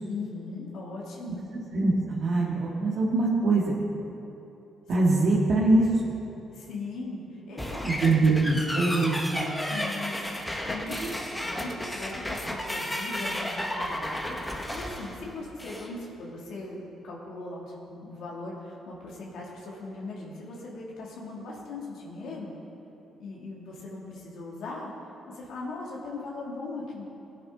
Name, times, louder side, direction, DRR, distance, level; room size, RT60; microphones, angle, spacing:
voice 1, 0.1-1.4 6.5-8.1 9.7-22.6 23.2-24.9 25.3-27.0, left 3 dB, 80° left, -4 dB, 2.6 m, -39 dB
voice 2, 1.7-3.7 4.9-6.1 7.7-9.5 11.0-11.1, right 2 dB, 60° right, -6 dB, 1.9 m, -23 dB
sound 1, 7.6-15.9, left 1 dB, 10° left, 1.3 m, -33 dB
17.5 x 9.9 x 4.0 m, 2.9 s
cardioid pair, 90°, 0 cm